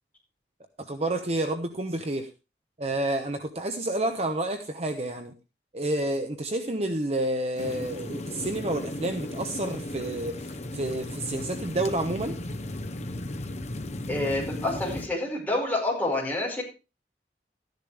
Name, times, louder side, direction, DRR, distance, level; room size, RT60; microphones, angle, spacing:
voice 1, 0.8-2.3 2.8-5.3 5.7-12.4, right 1 dB, 35° right, 6 dB, 0.9 m, -29 dB
sound 1, 7.6-15.1, left 1 dB, 40° left, 1.0 m, -35 dB
voice 2, 14.1-16.6, left 2 dB, 10° left, -3 dB, 5.4 m, -28 dB
13.5 x 10.5 x 3.4 m, 0.29 s
head